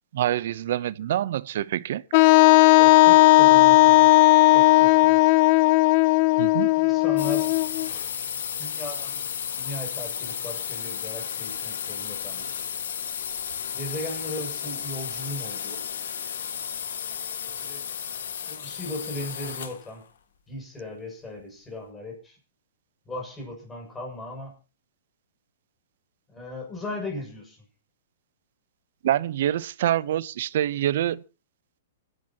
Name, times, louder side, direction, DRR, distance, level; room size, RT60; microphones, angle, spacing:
voice 1, 0.1-2.3 6.4-6.7 29.0-31.2, right 12 dB, 60° right, 0.8 m, -26 dB
Wind instrument woodwind instrument, 2.1-7.9, left 20 dB, 40° left, 0.6 m, -16 dB
voice 2, 2.7-4.1 4.5-5.4 6.8-7.6 8.6-9.3 9.6-12.6 13.7-15.8 17.5-17.9 18.5-20.0 20.5-22.4 23.1-24.5 26.3-27.6, left 1 dB, 10° left, 7.0 m, -37 dB
sound 1, 7.2-19.9, left 8 dB, 75° left, 1.9 m, -33 dB
25.0 x 10.5 x 3.0 m
hypercardioid pair, 150°, 0 cm